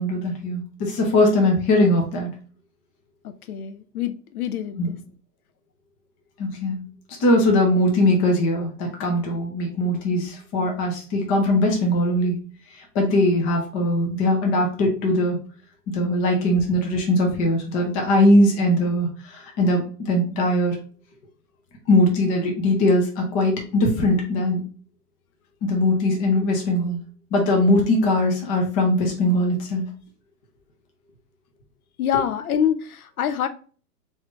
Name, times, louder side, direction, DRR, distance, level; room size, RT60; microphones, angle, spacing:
voice 1, 0.0-2.3 4.8-4.9 6.4-6.8 7.2-12.4 12.8-15.4 15.9-20.8 21.9-24.6 25.6-27.0 27.3-29.9, left 1 dB, 15° left, 1 dB, 0.6 m, -20 dB
voice 2, 3.2-5.0 32.0-33.5, left 9 dB, 65° left, 10 dB, 0.6 m, -26 dB
3.4 x 2.7 x 3.3 m, 0.40 s
hypercardioid pair, 130°, 49 cm